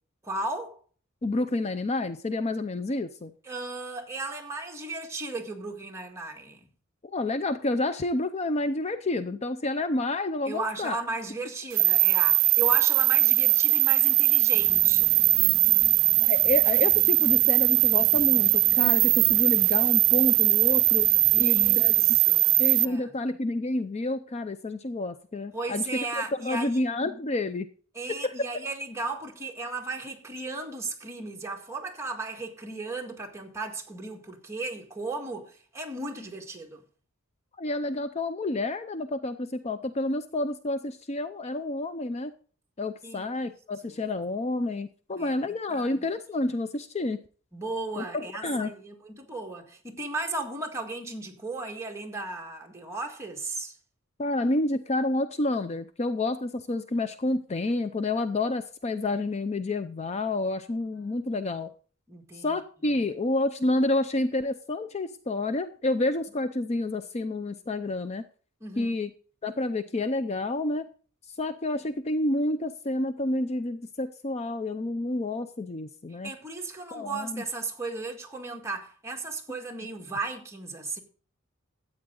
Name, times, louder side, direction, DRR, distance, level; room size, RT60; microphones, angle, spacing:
voice 1, 0.2-0.8 3.4-6.7 10.5-15.2 21.3-23.1 25.5-26.8 27.9-36.8 43.0-43.3 43.8-44.0 45.2-45.3 45.7-46.0 47.5-53.8 62.1-62.6 68.6-68.9 76.2-81.0, right 2 dB, 15° right, 1.8 m, -35 dB
voice 2, 1.2-3.3 7.1-11.0 16.2-21.1 21.4-21.9 22.6-26.1 26.4-27.7 28.2-28.3 37.6-42.3 42.8-47.2 48.0-48.7 54.2-61.7 62.3-68.2 68.8-69.1 69.4-70.9 71.4-76.3 76.9-77.4, left 2 dB, 30° left, 0.5 m, -29 dB
sound 1, 11.7-22.8, right 21 dB, 70° right, 0.5 m, -21 dB
sound 2, 14.5-22.2, right 1 dB, 30° right, 1.8 m, -45 dB
13.5 x 8.7 x 3.8 m
head